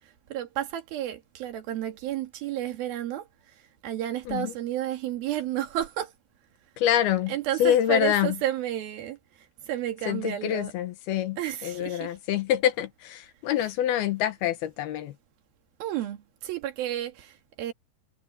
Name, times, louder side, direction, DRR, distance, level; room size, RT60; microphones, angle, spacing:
voice 1, 0.3-3.3 3.8-6.1 7.3-9.2 9.7-10.7 11.4-12.1 15.8-17.7, right 12 dB, 60° right, 3.4 m, -31 dB
voice 2, 6.8-7.3 7.6-8.4 10.1-15.1, left 11 dB, 70° left, 2.7 m, -26 dB
omnidirectional pair, 5.3 m